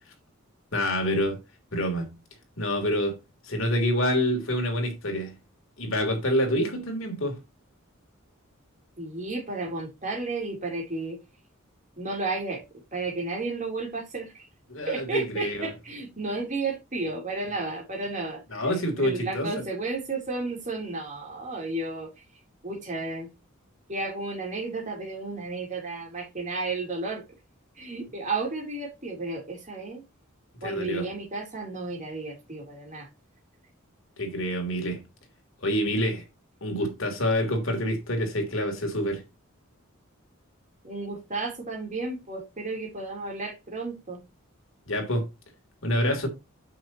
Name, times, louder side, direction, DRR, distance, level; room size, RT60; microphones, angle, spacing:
voice 1, 0.7-1.4 1.7-2.1 2.6-3.2 3.4-5.3 5.8-7.4 14.7-15.7 18.5-19.6 30.6-31.1 34.2-35.0 35.6-36.2 36.6-39.2 44.9-45.3 45.8-46.3, equal, 70° left, 3.2 m, -27 dB
voice 2, 9.0-11.2 12.0-12.6 12.9-14.5 14.9-18.6 19.0-22.1 22.6-23.3 23.9-27.2 27.8-30.0 30.6-33.1 40.8-44.2, right 3 dB, 40° right, 3.4 m, -33 dB
9.0 x 7.5 x 3.0 m
head